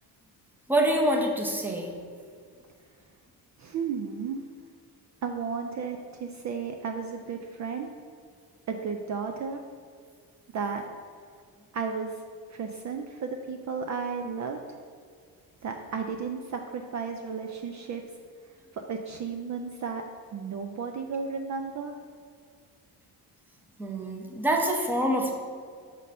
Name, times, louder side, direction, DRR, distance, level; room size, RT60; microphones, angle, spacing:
voice 1, 0.7-1.9 23.8-25.3, right 1 dB, 5° right, 1 dB, 0.7 m, -26 dB
voice 2, 3.6-4.4 5.2-7.9 8.7-9.6 10.5-10.8 11.7-12.2 12.5-14.8 15.6-18.0 18.7-20.0 20.3-21.9, right 5 dB, 45° right, 4 dB, 0.4 m, -33 dB
6.6 x 3.8 x 5.5 m, 2.1 s
cardioid pair, 140°, 40 cm